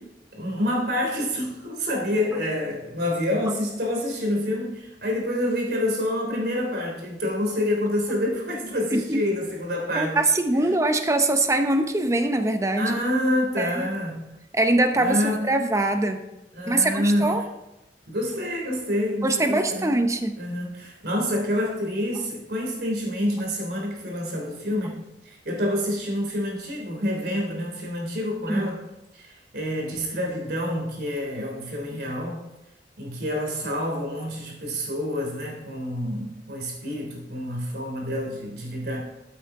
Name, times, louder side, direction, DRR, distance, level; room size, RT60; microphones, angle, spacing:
voice 1, 0.3-10.2 10.5-10.6 12.8-14.3 14.9-15.6 16.5-17.5 18.1-19.9 20.4-28.8 29.1-32.4 33.0-39.0, left 1 dB, 65° right, 0 dB, 3.3 m, -27 dB
voice 2, 9.9-12.9 13.6-13.9 14.5-16.2 16.7-17.4 19.2-20.4 28.5-28.7, right 2 dB, 15° right, 6 dB, 0.8 m, -23 dB
13.0 x 8.3 x 3.7 m, 0.93 s
head